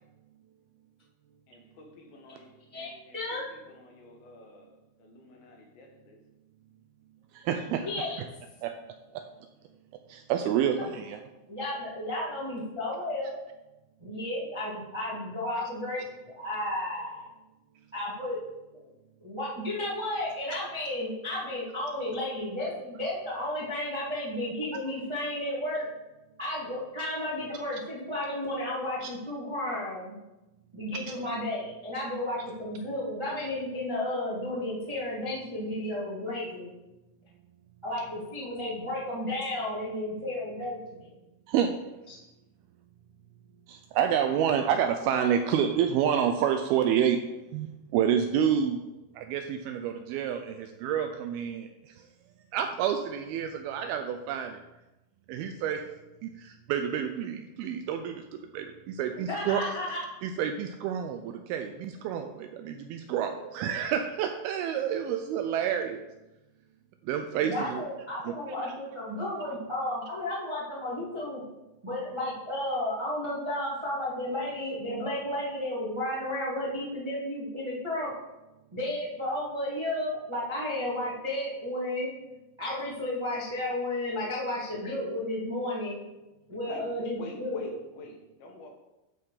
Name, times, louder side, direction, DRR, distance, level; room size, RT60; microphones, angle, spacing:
voice 1, 1.5-4.7 5.0-6.2 86.6-88.8, left 2 dB, 70° left, 2 dB, 2.8 m, -48 dB
voice 2, 2.7-3.4 7.7-8.2 10.8-10.9 11.5-13.4 14.0-16.0 16.4-17.3 17.9-18.4 19.2-25.9 26.4-30.1 30.7-36.7 37.8-41.1 59.3-60.0 67.4-71.4 71.8-78.1 78.7-82.1 82.6-86.0 86.5-87.7, left 1 dB, 20° right, -7 dB, 0.7 m, -33 dB
voice 3, 7.3-8.1 8.6-8.8 9.1-9.3 10.1-11.2 29.0-29.1 31.1-31.2 41.5-41.8 43.7-48.8 49.2-51.7 52.0-52.1 52.5-54.6 55.3-55.8 56.2-59.7 60.2-66.0 67.0-67.9 68.2-68.7, right 8 dB, 85° right, 7 dB, 2.2 m, -29 dB
12.0 x 4.5 x 4.9 m, 0.99 s
omnidirectional pair, 4.8 m